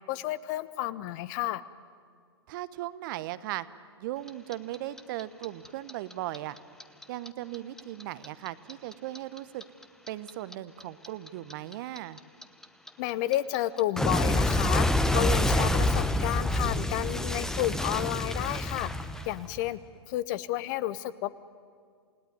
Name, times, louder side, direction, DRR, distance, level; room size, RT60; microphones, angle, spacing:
voice 1, 0.1-1.6 13.0-14.9 15.1-18.9 19.2-19.8 20.1-21.3, left 14 dB, 45° left, 17 dB, 0.9 m, -31 dB
voice 2, 2.5-3.7 4.0-6.6 7.1-9.6 10.1-12.2, right 15 dB, 50° right, 16 dB, 1.0 m, -37 dB
Clock, 4.3-7.3 7.5-10.5 10.8-19.7, left 1 dB, 5° left, 1.0 m, -27 dB
28.0 x 17.5 x 9.5 m, 2.1 s
hypercardioid pair, 115°, 14 cm